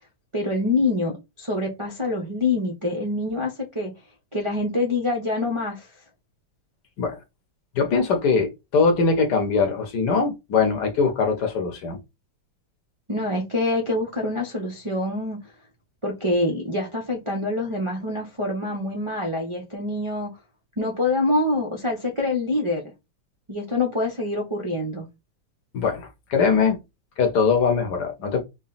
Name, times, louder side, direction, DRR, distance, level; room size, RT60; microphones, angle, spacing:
voice 1, 0.3-3.9 4.3-5.9 13.1-15.4 16.0-20.3 20.8-22.9 23.5-25.1, left 2 dB, 45° right, 0.4 m, -25 dB
voice 2, 7.7-12.0 25.7-26.8 27.2-28.4, left 5 dB, 65° left, 1.4 m, -22 dB
4.0 x 2.2 x 4.0 m
omnidirectional pair, 2.1 m